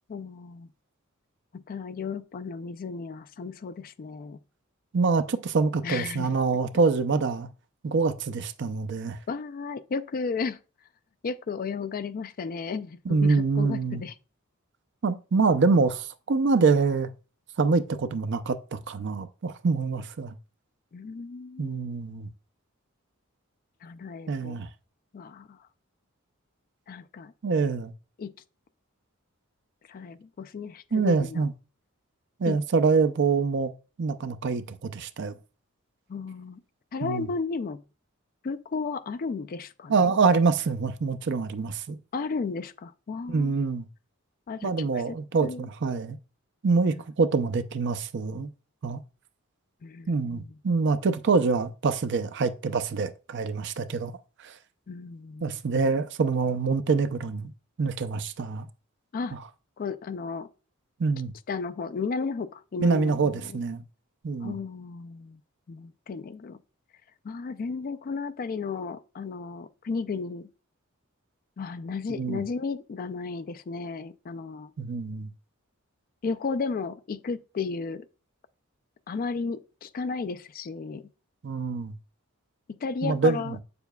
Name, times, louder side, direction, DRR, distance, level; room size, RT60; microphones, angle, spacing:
voice 1, 0.1-0.7 1.5-4.4 5.8-6.3 9.3-10.6 11.2-14.1 20.9-21.8 23.8-24.6 25.1-25.6 26.9-27.3 28.2-28.3 29.9-31.5 32.5-32.6 36.1-36.6 36.9-37.8 38.4-40.1 42.1-43.6 44.5-45.7 46.9-47.0 49.8-50.5 54.9-55.6 59.1-59.4 59.8-60.5 61.5-63.6 64.4-65.4 65.7-66.6 67.2-70.5 71.6-74.7 76.2-78.1 79.1-81.1 82.8-83.6, left 4 dB, 45° left, 0.4 m, -34 dB
voice 2, 4.9-7.5 7.8-9.2 13.1-14.0 15.0-17.1 17.6-20.3 21.6-22.3 24.3-24.7 27.4-27.9 30.9-31.5 32.4-33.7 34.0-35.3 37.0-37.3 39.9-42.0 43.3-43.9 44.6-46.2 46.6-48.5 48.8-49.0 50.1-54.1 54.4-54.5 55.4-57.5 57.8-58.7 61.0-61.3 62.8-63.8 64.2-64.5 72.1-72.4 74.8-75.3 81.4-81.9 83.0-83.6, right 4 dB, 55° right, 0.5 m, -25 dB
7.9 x 6.8 x 2.2 m
head